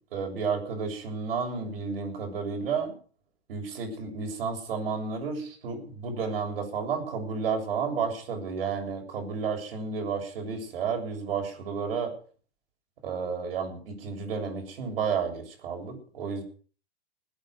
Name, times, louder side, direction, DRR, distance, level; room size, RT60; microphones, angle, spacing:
voice 1, 0.1-2.9 3.5-12.1 13.0-16.4, right 5 dB, 60° right, 3 dB, 7.5 m, -31 dB
21.0 x 9.3 x 6.4 m, 0.42 s
figure-of-eight pair, 110°, 32 cm